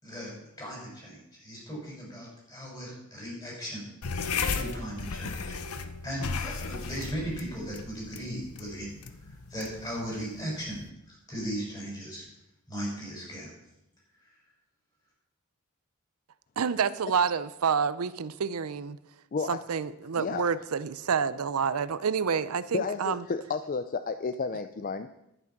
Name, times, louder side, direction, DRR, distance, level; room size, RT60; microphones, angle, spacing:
voice 1, 0.0-3.8 4.5-8.9 9.2-10.8 11.1-12.3 12.7-13.5 14.1-14.4, equal, 20° left, -3 dB, 6.1 m, -37 dB
sound 1, 4.0-10.9, left 4 dB, 85° left, 0.9 m, -35 dB
voice 2, 16.6-19.0 19.5-23.2, right 6 dB, 80° right, 16 dB, 0.5 m, -28 dB
voice 3, 22.7-25.1, left 4 dB, 40° left, 10 dB, 0.4 m, -31 dB
11.0 x 9.7 x 5.9 m, 0.87 s
head